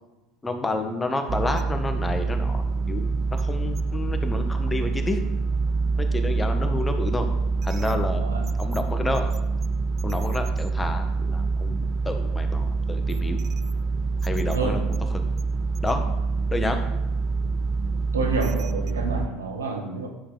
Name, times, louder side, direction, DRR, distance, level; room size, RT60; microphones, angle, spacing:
voice 1, 0.4-5.2 6.0-7.3 7.6-8.2 8.6-9.3 10.0-13.4 14.2-14.8 15.1-15.2 15.8-16.0 16.5-16.8, left 2 dB, 15° left, 6 dB, 1.4 m, -29 dB
sound 1, 1.3-19.3, right 4 dB, 40° right, 0.3 m, -26 dB
voice 2, 8.2-8.5 14.4-14.8 18.1-20.1, right 3 dB, 85° right, 3 dB, 1.3 m, -29 dB
10.0 x 6.4 x 4.1 m, 1.0 s
hypercardioid pair, 70°, 0 cm